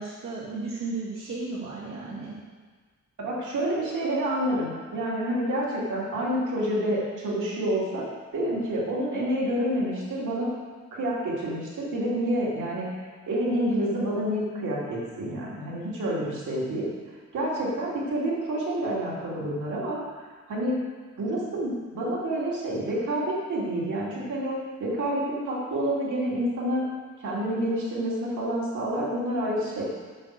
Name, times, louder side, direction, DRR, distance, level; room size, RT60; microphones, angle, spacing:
voice 1, 0.0-2.4, right 3 dB, 60° right, -7 dB, 2.4 m, -34 dB
voice 2, 3.2-8.0 8.3-10.5 10.9-12.9 13.3-16.9 17.3-20.0 20.5-20.8 21.2-24.5 24.8-26.8 27.2-29.8, right 1 dB, 85° right, -5 dB, 2.9 m, -28 dB
8.5 x 7.6 x 6.7 m, 1.5 s
wide cardioid pair, 180°, 30 cm